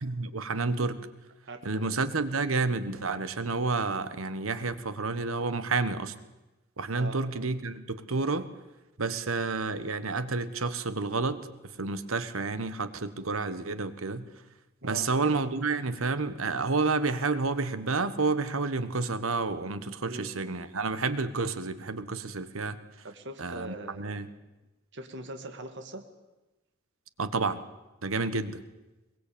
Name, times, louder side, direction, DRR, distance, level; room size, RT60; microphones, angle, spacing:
voice 1, 0.0-1.1 1.6-6.1 6.8-8.5 9.0-14.3 14.8-22.8 23.4-24.3 27.2-27.6 28.0-28.6, right 3 dB, 85° right, 12 dB, 1.5 m, -30 dB
voice 2, 1.4-1.9 7.0-7.2 14.8-15.1 20.0-20.3 23.0-24.2 24.9-26.0, right 2 dB, 60° right, 6 dB, 2.2 m, -41 dB
22.5 x 20.5 x 8.8 m, 1.1 s
head